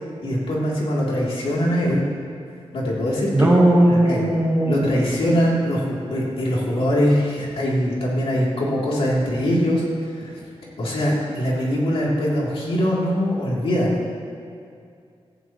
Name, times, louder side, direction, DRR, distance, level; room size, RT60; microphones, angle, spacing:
voice 1, 0.2-2.0 2.7-3.5 3.8-4.3 4.7-9.8 10.1-10.3 10.8-14.1, equal, 65° left, -5 dB, 3.1 m, -22 dB
voice 2, 3.3-4.8, right 1 dB, 15° right, -3 dB, 1.8 m, -17 dB
17.0 x 15.0 x 3.1 m, 2.4 s
wide cardioid pair, 165°, 10 cm